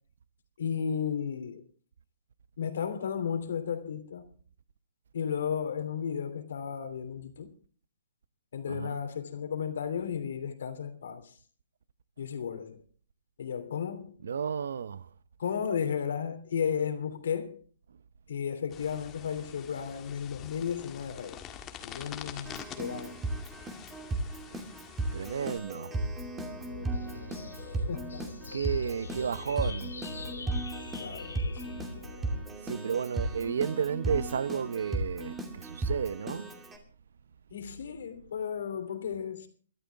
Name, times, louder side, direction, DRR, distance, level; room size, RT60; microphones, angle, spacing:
voice 1, 0.6-1.6 2.6-4.3 5.1-7.5 8.5-11.3 12.2-12.8 13.4-14.2 15.4-17.6 18.3-21.4 21.8-23.2 26.7-28.3 31.0-31.8 37.5-39.5, left 7 dB, 65° left, 3.0 m, -34 dB
voice 2, 8.7-9.0 14.2-15.1 25.1-26.0 28.5-29.9 32.3-36.5, right 7 dB, 70° right, 0.7 m, -32 dB
sound 1, 18.7-25.6, left 9 dB, 20° left, 1.6 m, -46 dB
Keyboard (musical), 22.4-36.8, right 2 dB, 10° right, 2.5 m, -36 dB
sound 2, 26.0-32.4, left 4 dB, 90° left, 2.2 m, -43 dB
22.5 x 12.5 x 3.5 m
hypercardioid pair, 145°, 0 cm